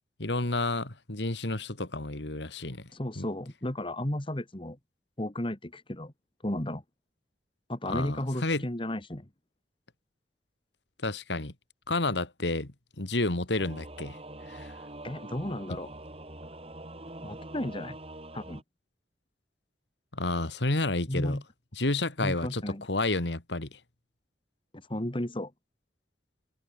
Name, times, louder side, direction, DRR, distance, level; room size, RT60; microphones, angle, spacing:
voice 1, 0.2-2.9 3.2-3.3 7.9-8.6 11.0-11.5 11.9-12.7 13.0-14.2 14.5-14.7 20.1-21.4 21.8-22.6 22.9-23.8, left 2 dB, 80° left, 2.5 m, -30 dB
voice 2, 2.9-4.8 5.2-6.1 6.4-6.8 7.7-9.3 15.0-15.9 17.2-18.0 18.3-18.6 21.1-21.4 22.2-22.8 24.9-25.5, left 1 dB, 30° left, 1.9 m, -33 dB
Singing / Musical instrument, 13.6-18.6, right 1 dB, 35° right, 7.7 m, -44 dB
head